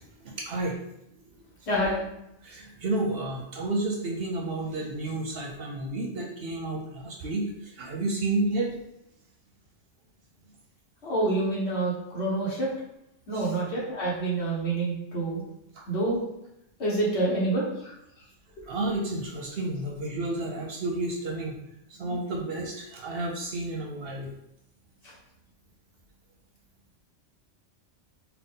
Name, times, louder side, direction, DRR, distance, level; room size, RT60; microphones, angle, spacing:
voice 1, 0.2-0.8 2.4-8.7 13.3-13.5 15.8-15.9 18.7-21.5 21.9-24.3, right 2 dB, 60° right, 0 dB, 0.7 m, -31 dB
voice 2, 1.7-2.0 11.0-12.7 13.3-15.4 15.9-16.2 16.8-17.9 18.6-18.7 22.0-22.2 25.0-25.1, right 2 dB, 60° left, -5 dB, 1.4 m, -27 dB
3.9 x 2.3 x 3.6 m, 0.82 s
omnidirectional pair, 1.3 m